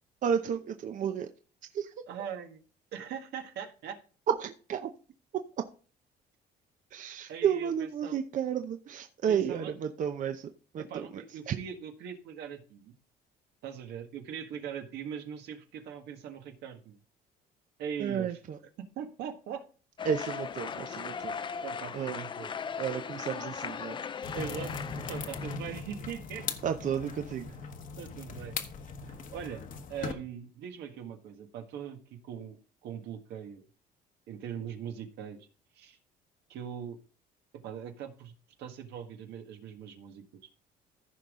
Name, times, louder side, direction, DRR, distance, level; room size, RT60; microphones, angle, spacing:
voice 1, 0.2-1.3 1.6-1.9 4.3-4.9 5.3-5.7 6.9-11.6 18.0-18.6 20.0-21.4 21.9-22.3 22.8-24.4 26.6-27.6, right 8 dB, 50° right, 0.8 m, -32 dB
voice 2, 2.1-2.6 2.9-4.0 7.3-7.7 8.0-8.2 9.3-9.7 10.9-12.9 13.6-17.0 17.8-18.3 18.9-19.6 21.6-22.5 24.3-26.5 28.0-28.6 29.0-29.6 29.9-33.6 34.3-35.5 35.7-36.0 36.5-37.0 37.6-40.2, right 8 dB, 80° right, 1.6 m, -41 dB
sound 1, 20.0-25.6, left 6 dB, 30° left, 0.4 m, -38 dB
sound 2, 24.2-30.1, left 5 dB, 50° left, 1.2 m, -39 dB
15.0 x 5.4 x 3.7 m
cardioid pair, 110°, 17 cm